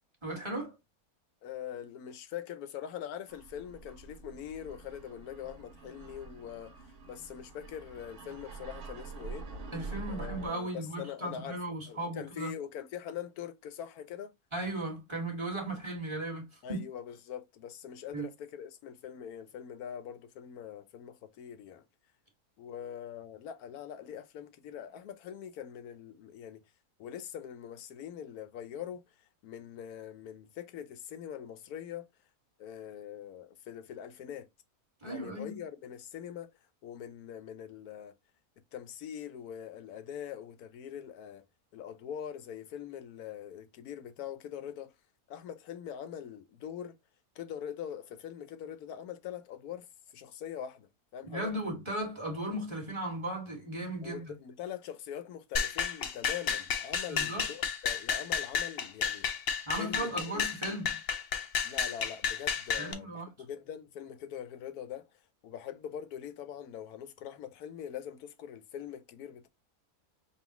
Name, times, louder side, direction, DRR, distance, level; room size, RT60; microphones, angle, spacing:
voice 1, 0.2-0.7 9.7-12.5 14.5-16.8 18.1-18.2 35.0-35.6 51.2-54.3 57.1-57.5 59.7-61.0 62.8-63.3, right 1 dB, 20° right, 1.6 m, -36 dB
voice 2, 1.4-9.5 10.1-14.3 16.6-21.8 22.6-26.6 27.0-32.1 32.6-34.5 35.0-36.5 36.8-38.1 38.7-41.4 41.7-44.9 45.3-47.0 47.3-49.9 50.1-51.5 54.0-59.3 59.8-60.5 61.6-65.1 65.4-69.5, left 9 dB, 85° left, 1.2 m, -43 dB
sound 1, 3.3-10.5, right 4 dB, 55° right, 1.2 m, -46 dB
sound 2, 55.6-62.9, left 7 dB, 55° left, 0.7 m, -32 dB
5.6 x 2.4 x 2.9 m
omnidirectional pair, 1.6 m